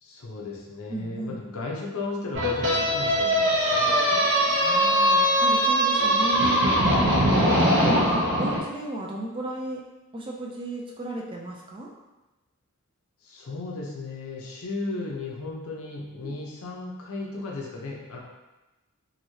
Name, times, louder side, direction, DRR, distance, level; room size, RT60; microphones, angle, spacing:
voice 1, 0.0-3.8 13.2-18.2, left 3 dB, 80° left, -2 dB, 0.6 m, -36 dB
voice 2, 0.9-1.4 4.6-6.7 7.8-9.8 10.1-11.9 16.2-16.3, right 2 dB, 25° right, -1 dB, 0.3 m, -35 dB
sound 1, 2.3-8.6, equal, 55° right, 0.6 m, -21 dB
3.0 x 2.7 x 2.7 m, 1.1 s
head